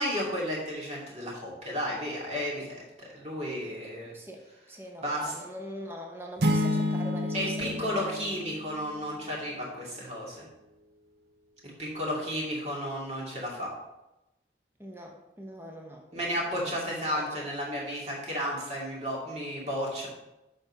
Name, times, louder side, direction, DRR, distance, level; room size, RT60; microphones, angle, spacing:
voice 1, 0.0-2.7 3.1-4.1 5.0-5.3 7.3-10.5 11.8-13.7 16.1-20.1, equal, 35° right, -4 dB, 2.3 m, -33 dB
voice 2, 3.8-8.3 14.8-16.8 17.2-17.5, equal, 15° right, 1 dB, 0.9 m, -43 dB
sound 1, 6.4-9.2, left 1 dB, 65° right, 0.8 m, -29 dB
7.0 x 5.3 x 5.4 m, 0.96 s
head